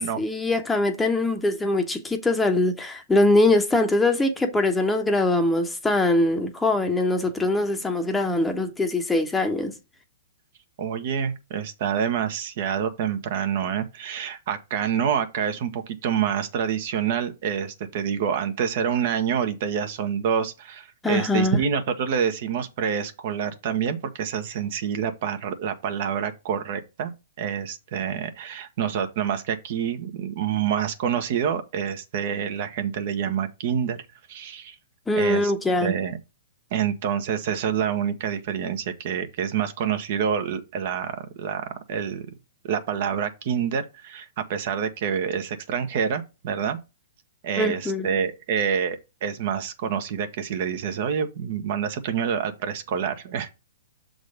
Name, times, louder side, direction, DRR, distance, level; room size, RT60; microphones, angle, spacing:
voice 1, 0.2-9.7 21.0-21.6 35.1-35.9 47.6-48.1, left 2 dB, 5° left, 1.0 m, -22 dB
voice 2, 10.8-27.1 27.4-34.0 34.3-34.7 35.1-35.5 35.8-36.2 36.7-42.3 42.6-46.8 47.4-53.5, right 8 dB, 55° right, 1.2 m, -27 dB
6.6 x 3.9 x 5.0 m
hypercardioid pair, 140°, 0 cm